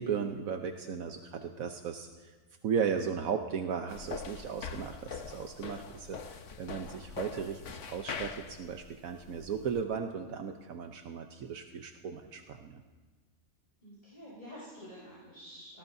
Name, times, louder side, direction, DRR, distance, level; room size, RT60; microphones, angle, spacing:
voice 1, 0.0-2.3 2.6-12.8, right 7 dB, 80° right, 5 dB, 1.2 m, -36 dB
sound 1, 3.9-9.8, left 6 dB, 65° left, 1.2 m, -43 dB
voice 2, 13.8-15.8, equal, 30° left, -8 dB, 6.1 m, -49 dB
25.5 x 18.5 x 2.7 m, 1.3 s
omnidirectional pair, 1.5 m